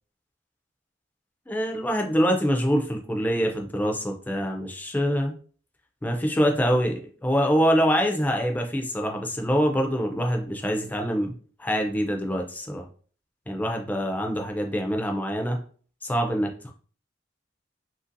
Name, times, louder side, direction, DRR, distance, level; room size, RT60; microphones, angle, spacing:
voice 1, 1.5-5.3 6.0-11.3 11.6-12.8 13.5-15.6 16.0-16.7, equal, 10° left, 3 dB, 0.3 m, -25 dB
2.8 x 2.6 x 2.5 m, 0.43 s
head